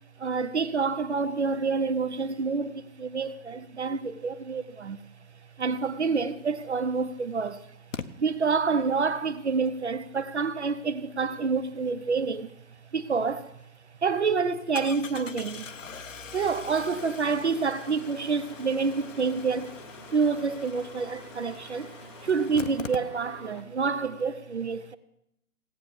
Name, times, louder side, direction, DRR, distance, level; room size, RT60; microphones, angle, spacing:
voice 1, 0.2-5.0 5.6-7.7 8.2-12.5 12.9-13.5 14.0-15.7 16.3-19.7 20.1-21.9 22.2-25.0, right 5 dB, 45° right, 0.8 m, -28 dB
Engine starting, 6.4-6.5 7.9-8.1 13.1-13.2 13.6-13.7 14.7-23.6 23.8-23.9 24.1-24.2, left 6 dB, 55° left, 1.0 m, -43 dB
sound 1, 16.9-23.6, left 2 dB, 20° left, 0.9 m, -49 dB
17.0 x 9.4 x 7.1 m
hypercardioid pair, 175°, 45 cm